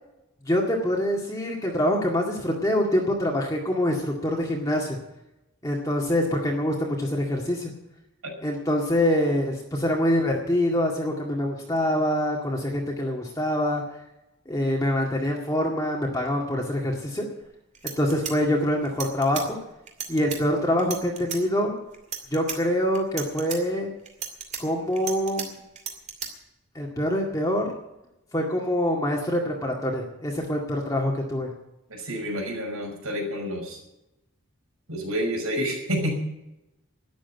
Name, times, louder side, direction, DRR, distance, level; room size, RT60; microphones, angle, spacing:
voice 1, 0.5-5.0 5.6-7.7 8.4-13.8 14.5-17.3 18.0-19.6 20.1-21.7 22.3-23.9 24.6-25.6 26.8-27.7 28.3-31.5, left 1 dB, 15° left, -1 dB, 2.0 m, -25 dB
sound 1, 17.4-17.5 17.7-19.5 19.9-20.4 20.8-21.4 21.9-22.6 22.9-23.6 24.1-25.5 25.8-26.3, right 7 dB, 35° right, 2.6 m, -34 dB
voice 2, 31.9-33.8 34.9-36.2, equal, 90° right, 1 dB, 5.9 m, -29 dB
12.5 x 10.5 x 9.4 m, 0.92 s
head